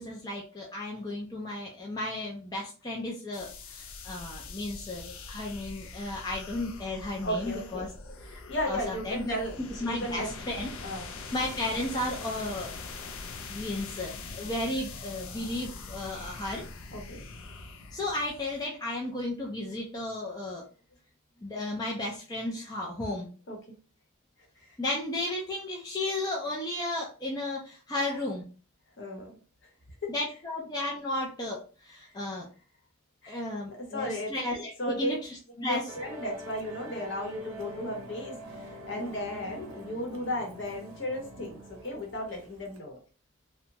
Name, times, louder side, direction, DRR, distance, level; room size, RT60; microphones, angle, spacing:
voice 1, 0.0-7.9 8.7-9.4 9.7-10.7 11.3-12.7 13.5-16.6 17.9-20.6 21.4-23.3 24.8-28.4 30.1-32.5 33.3-35.9, left 1 dB, 20° left, -2 dB, 0.4 m, -34 dB
sound 1, 3.3-18.7, left 3 dB, 90° left, 0.5 m, -43 dB
voice 2, 7.2-7.9 8.2-9.6 9.8-10.3 10.8-11.1 16.9-17.2 23.5-23.6 29.0-29.4 30.0-30.1 33.2-33.4 33.9-34.3 34.8-35.1 35.6-43.0, left 1 dB, 60° left, 0 dB, 0.9 m, -35 dB
Musical instrument, 35.9-42.8, equal, 80° right, 0.6 m, -45 dB
2.7 x 2.1 x 2.9 m, 0.37 s
head